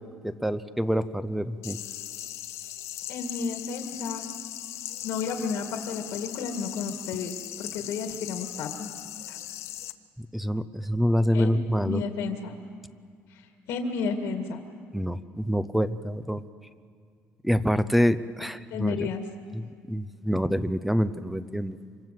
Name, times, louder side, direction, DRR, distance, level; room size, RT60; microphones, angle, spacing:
voice 1, 0.2-1.8 10.2-12.0 14.9-16.4 17.4-19.1 19.6-21.8, equal, 5° right, 13 dB, 0.6 m, -26 dB
sound 1, 1.6-9.9, left 12 dB, 70° left, 0.9 m, -39 dB
voice 2, 3.1-4.2 5.0-8.9 9.3-9.4 11.3-11.6 11.8-12.5 13.3-13.4 13.7-14.6 18.7-19.2, left 5 dB, 90° left, 4 dB, 2.0 m, -32 dB
26.0 x 25.5 x 7.7 m, 2.1 s
cardioid pair, 160°, 5 cm